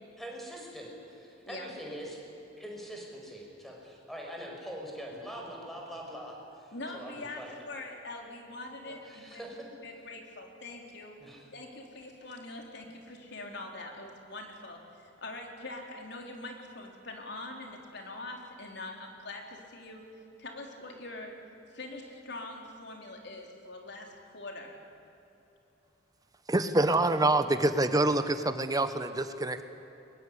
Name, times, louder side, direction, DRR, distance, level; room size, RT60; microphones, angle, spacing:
voice 1, 0.2-2.2 2.6-6.7 6.9-7.6 8.8-9.6 11.2-11.5, equal, ahead, -1 dB, 5.7 m, -43 dB
voice 2, 6.7-9.4 9.8-11.2 11.5-20.0 20.4-21.3 21.7-24.7, left 2 dB, 60° left, 2 dB, 4.1 m, -43 dB
voice 3, 26.5-29.6, right 2 dB, 20° right, 10 dB, 1.1 m, -26 dB
22.5 x 22.5 x 9.9 m, 3.0 s
head